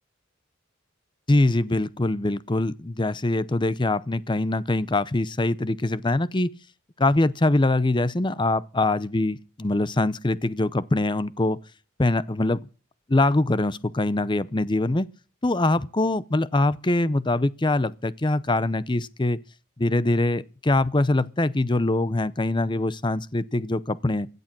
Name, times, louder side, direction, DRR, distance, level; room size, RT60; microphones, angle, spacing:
voice 1, 1.3-6.5 7.0-11.6 12.0-12.6 13.1-15.1 15.4-19.4 19.8-24.3, left 2 dB, 20° left, 0.6 m, -23 dB
16.5 x 11.0 x 6.1 m
head